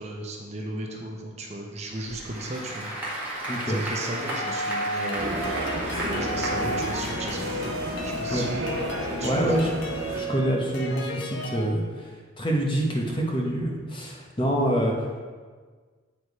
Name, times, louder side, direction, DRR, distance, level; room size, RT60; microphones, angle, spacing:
voice 1, 0.0-2.9 3.6-5.4 6.1-8.7 9.0-9.5, right 1 dB, 30° right, 0 dB, 0.8 m, -35 dB
Applause / Crowd, 1.9-8.5, right 1 dB, 10° right, 1.5 m, -34 dB
voice 2, 3.5-3.8 8.3-8.7 9.2-9.7 10.1-15.2, equal, 25° left, -1 dB, 1.0 m, -26 dB
sound 1, 4.3-11.7, equal, 65° left, 0.9 m, -33 dB
sound 2, 5.2-10.2, right 1 dB, 80° right, 1.4 m, -32 dB
8.3 x 4.6 x 4.7 m, 1.5 s
head